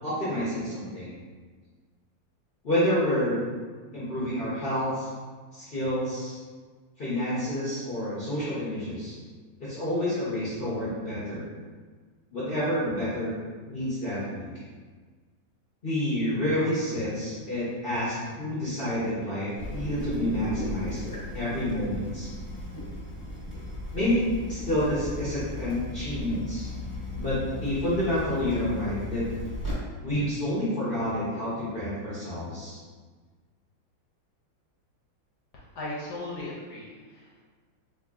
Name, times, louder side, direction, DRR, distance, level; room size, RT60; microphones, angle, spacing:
voice 1, 0.0-1.1 2.6-3.4 3.9-5.1 5.5-6.4 7.0-9.2 9.6-11.5 12.3-13.3 13.6-14.5 15.8-22.3 23.9-26.7 27.1-29.3 30.0-32.8, left 1 dB, 45° left, -10 dB, 0.7 m, -29 dB
Water tap faucet / Drip, 19.6-29.7, left 2 dB, 15° left, 0.9 m, -36 dB
voice 2, 35.5-37.4, left 2 dB, 65° left, -5 dB, 1.1 m, -38 dB
3.3 x 2.6 x 3.5 m, 1.5 s
omnidirectional pair, 2.3 m